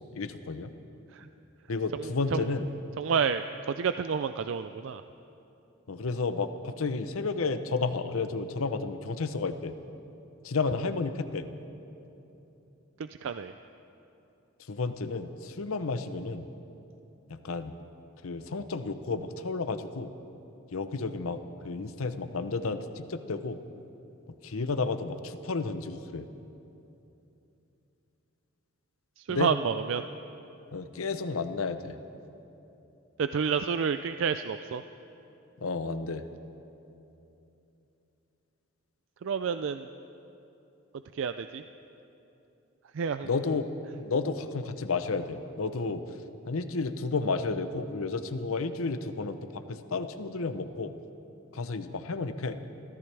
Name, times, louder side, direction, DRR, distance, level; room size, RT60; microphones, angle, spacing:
voice 1, 0.1-0.7 1.7-2.7 5.9-9.7 10.4-11.5 14.7-16.5 17.3-17.7 18.2-20.1 20.7-23.6 24.4-26.3 29.3-29.5 30.7-32.0 35.6-36.2 43.2-43.7 43.9-46.0 46.5-50.9 51.5-52.6, left 4 dB, 85° left, 10 dB, 0.7 m, -32 dB
voice 2, 2.0-2.5 3.0-5.0 13.0-13.5 29.2-30.0 33.2-34.8 39.2-39.9 41.1-41.6 42.9-43.3, right 6 dB, 65° right, 10 dB, 0.4 m, -30 dB
29.5 x 14.0 x 3.4 m, 2.9 s
head